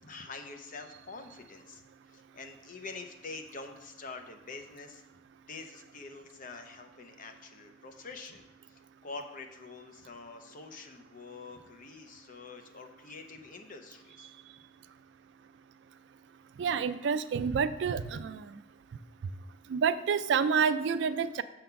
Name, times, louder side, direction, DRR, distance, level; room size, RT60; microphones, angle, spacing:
voice 1, 0.0-1.8 2.1-5.0 5.5-14.3, left 3 dB, 45° left, 5 dB, 0.7 m, -46 dB
voice 2, 16.6-18.5 19.7-21.4, right 6 dB, 65° right, 13 dB, 0.3 m, -28 dB
6.8 x 3.8 x 5.7 m, 1.0 s
head